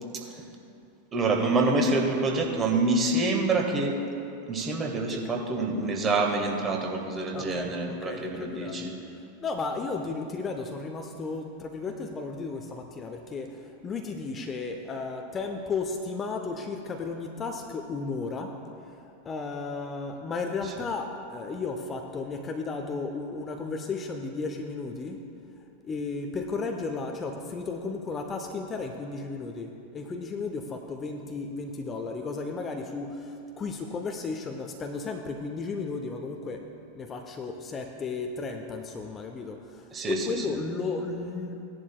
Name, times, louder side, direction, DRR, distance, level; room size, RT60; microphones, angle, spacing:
voice 1, 1.1-4.0 4.5-8.9 39.9-40.3, right 3 dB, 25° right, 1 dB, 1.5 m, -26 dB
voice 2, 5.1-5.4 7.3-25.2 25.6-36.7 36.9-41.6, left 4 dB, 20° left, 4 dB, 0.7 m, -34 dB
17.0 x 11.0 x 2.2 m, 2.6 s
figure-of-eight pair, 90°, 0 cm